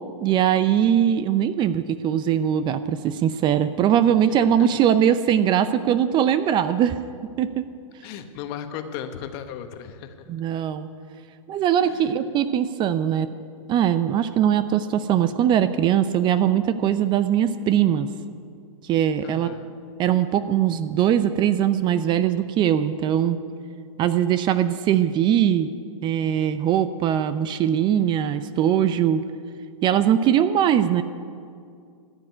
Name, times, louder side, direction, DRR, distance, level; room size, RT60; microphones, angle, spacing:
voice 1, 0.2-7.0 7.4-7.6 10.3-10.9 11.5-13.3 13.7-18.1 18.8-19.6 20.0-23.4 24.0-25.7 26.0-29.2 29.8-31.0, right 10 dB, 25° right, 13 dB, 0.5 m, -21 dB
voice 2, 8.0-10.1 11.8-12.3 19.2-19.7, left 8 dB, 45° left, 8 dB, 1.3 m, -36 dB
14.0 x 7.7 x 9.6 m, 2.3 s
hypercardioid pair, 120°, 17 cm